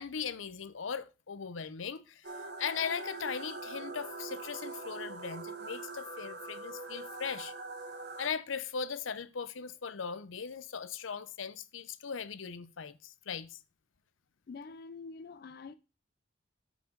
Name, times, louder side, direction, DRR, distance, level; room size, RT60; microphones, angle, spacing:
voice 1, 0.0-2.2 2.6-7.5 8.2-13.6, left 6 dB, 85° left, 0.7 m, -39 dB
sound 1, 2.2-8.3, right 3 dB, 55° right, 1.2 m, -43 dB
voice 2, 14.5-15.7, left 4 dB, 50° left, 0.4 m, -46 dB
12.5 x 5.0 x 3.8 m
head